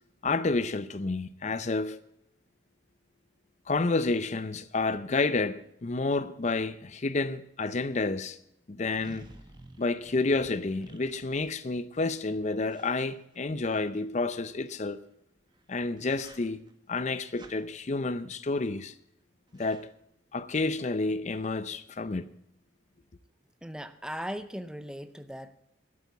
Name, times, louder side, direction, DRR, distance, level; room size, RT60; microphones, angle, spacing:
voice 1, 0.2-2.0 3.7-8.4 8.7-9.3 9.8-15.0 15.7-16.6 16.9-18.9 19.5-19.9 20.3-22.3, left 3 dB, 40° left, 0.5 m, -30 dB
sound 1, 8.9-11.8 12.7-14.0 15.4-15.6 16.0-16.7 17.4-17.6 18.5-18.9 19.2-19.3 19.5-19.8, right 1 dB, 25° right, 1.4 m, -52 dB
voice 2, 23.6-25.6, equal, 5° right, 0.6 m, -38 dB
12.0 x 8.6 x 8.4 m
head